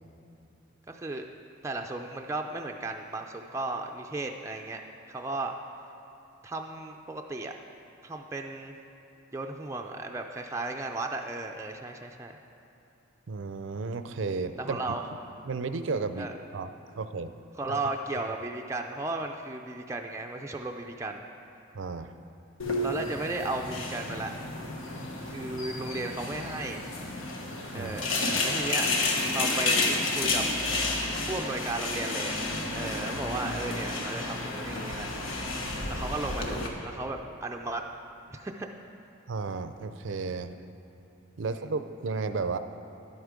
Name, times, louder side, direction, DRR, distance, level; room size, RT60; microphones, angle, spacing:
voice 1, 0.9-1.3 1.6-4.8 5.1-5.5 6.4-7.5 8.0-8.8 9.3-12.4 14.6-15.0 16.2-16.3 17.6-21.2 22.8-24.3 25.3-26.8 27.7-28.1 28.4-28.9 29.3-30.4 31.3-32.4 32.7-35.2 35.9-37.8 38.3-38.7, right 2 dB, 15° right, 2 dB, 0.4 m, -35 dB
voice 2, 13.3-14.8 15.4-16.3 16.5-16.7 17.0-17.3 17.7-17.8 21.7-22.1 27.7-28.0 39.3-40.5 41.4-42.6, right 4 dB, 70° right, 10 dB, 0.5 m, -33 dB
sound 1, 22.6-36.7, left 2 dB, 90° left, 1.2 m, -31 dB
11.0 x 8.1 x 5.1 m, 2.9 s
head